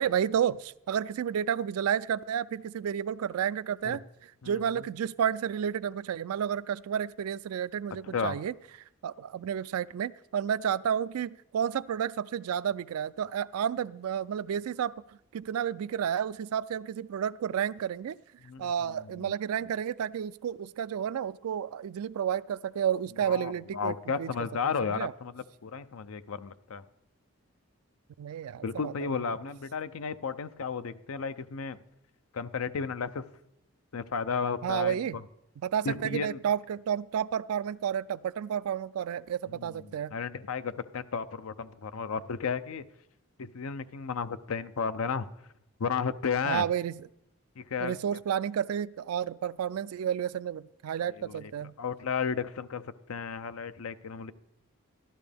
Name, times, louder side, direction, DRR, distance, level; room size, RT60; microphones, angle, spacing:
voice 1, 0.0-8.5 9.0-14.9 15.3-18.2 18.6-24.3 24.6-25.1 28.2-28.9 34.6-35.2 35.6-40.1 46.4-47.0 47.8-51.7, right 8 dB, 85° right, 17 dB, 0.3 m, -31 dB
voice 2, 8.0-8.4 18.4-19.3 23.2-26.8 28.6-31.8 32.3-33.2 33.9-35.2 35.8-36.4 39.5-42.8 43.4-45.3 45.8-46.6 47.6-47.9 51.0-51.5 51.8-52.8 53.1-54.3, left 5 dB, 75° left, 12 dB, 0.5 m, -33 dB
12.5 x 12.0 x 3.4 m, 0.80 s
head